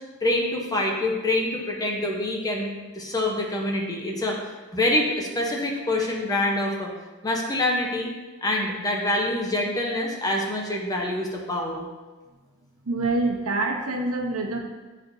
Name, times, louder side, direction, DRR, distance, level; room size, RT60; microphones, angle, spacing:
voice 1, 0.2-4.4 4.7-6.9 7.2-8.1 8.4-11.9, left 1 dB, 15° left, -1 dB, 0.8 m, -26 dB
voice 2, 12.9-14.6, right 2 dB, 75° right, 2 dB, 0.9 m, -26 dB
9.4 x 4.2 x 2.6 m, 1.3 s
head